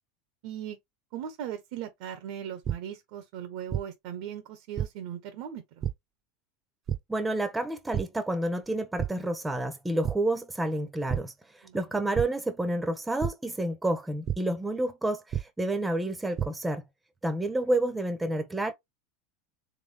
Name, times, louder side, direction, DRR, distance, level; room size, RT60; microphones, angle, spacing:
voice 1, 0.4-0.8 1.1-5.8 11.6-11.8, right 9 dB, 65° right, 1.1 m, -38 dB
sound 1, 2.6-2.7 3.7-3.8 4.8-4.9 5.8-5.9 6.9-7.0 7.9-8.0 8.5-8.7 9.0-9.1 10.0-10.1 11.1-11.2 12.1-12.2 13.2-13.3 14.3-14.4 15.3-15.4 16.1-16.5, right 10 dB, 35° right, 1.0 m, -28 dB
voice 2, 7.1-16.8 17.2-18.7, right 1 dB, 10° right, 1.1 m, -29 dB
3.7 x 3.4 x 3.4 m
hypercardioid pair, 110°, 0 cm